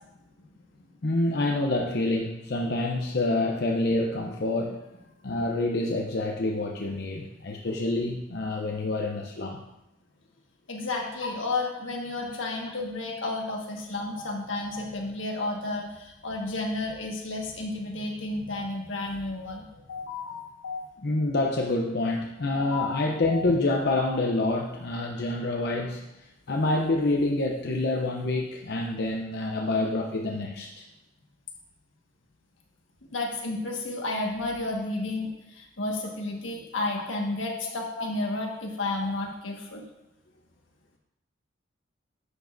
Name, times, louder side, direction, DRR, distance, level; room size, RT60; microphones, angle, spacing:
voice 1, 1.0-4.8 5.2-9.6 11.2-11.3 21.0-26.1 26.5-30.8, left 2 dB, 60° left, 0 dB, 0.7 m, -27 dB
voice 2, 10.7-20.8 22.5-23.4 33.1-39.8, left 2 dB, 85° left, 0 dB, 1.5 m, -32 dB
11.0 x 7.3 x 2.6 m, 0.91 s
head